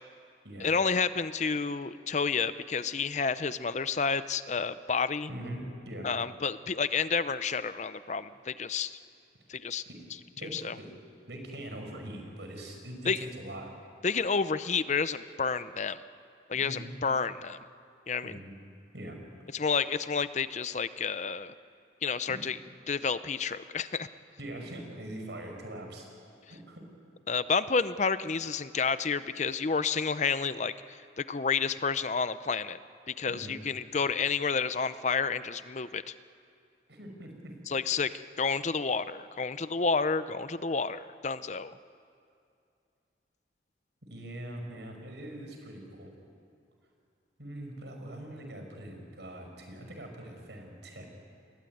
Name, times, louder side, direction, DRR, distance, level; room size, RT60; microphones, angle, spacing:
voice 1, 0.6-5.3 6.0-9.0 9.5-9.8 10.5-10.7 13.1-13.2 14.0-16.0 16.5-17.6 18.1-18.4 19.5-21.5 22.0-22.6 22.9-24.1 27.3-32.8 33.1-36.1 37.7-41.7, left 5 dB, 40° left, 14 dB, 0.6 m, -30 dB
voice 2, 5.3-6.1 9.9-10.1 10.4-10.9 11.3-13.7 16.5-17.0 18.2-18.5 18.9-19.2 22.3-22.4 24.4-26.1 26.5-26.9 33.3-33.6 36.9-37.5 44.1-46.1 47.4-51.1, right 1 dB, 65° right, 3 dB, 5.8 m, -42 dB
29.5 x 21.5 x 9.3 m, 2.5 s
head